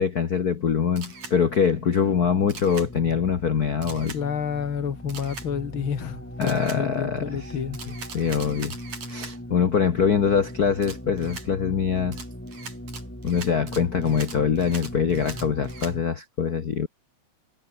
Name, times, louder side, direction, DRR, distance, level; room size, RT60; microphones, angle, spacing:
voice 1, 0.0-4.1 6.4-7.5 8.1-8.7 9.1-12.2 13.2-16.9, left 7 dB, 60° left, 0.9 m, -23 dB
sound 1, 0.8-16.0, equal, 5° left, 6.8 m, -39 dB
Camera, 1.0-1.4 2.5-2.9 3.8-4.2 5.1-5.5 6.4-6.8 7.7-9.3 10.8-11.5 12.1-15.9, right 5 dB, 55° right, 5.6 m, -41 dB
voice 2, 4.1-7.8, left 7 dB, 45° left, 2.6 m, -29 dB
omnidirectional pair, 3.6 m